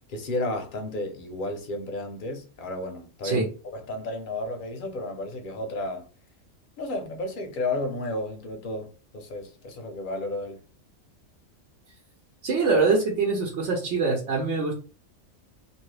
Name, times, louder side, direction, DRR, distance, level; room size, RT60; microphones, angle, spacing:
voice 1, 0.1-3.5 3.7-6.1 6.8-10.6, left 2 dB, 50° left, 0.7 m, -32 dB
voice 2, 12.4-14.7, right 4 dB, 65° right, 1.0 m, -24 dB
2.7 x 2.6 x 3.2 m
omnidirectional pair, 1.3 m